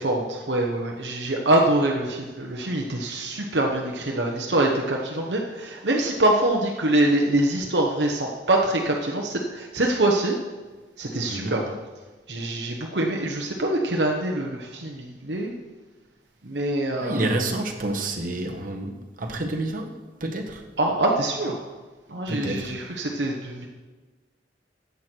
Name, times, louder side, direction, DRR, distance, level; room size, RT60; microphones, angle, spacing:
voice 1, 0.0-10.4 11.0-11.7 12.3-15.6 16.4-17.3 20.8-21.6 22.1-23.7, right 1 dB, 65° right, 0 dB, 1.1 m, -24 dB
voice 2, 11.3-11.6 17.0-20.6 22.3-22.8, right 1 dB, 50° right, 1 dB, 1.4 m, -29 dB
14.0 x 8.4 x 4.6 m, 1.3 s
head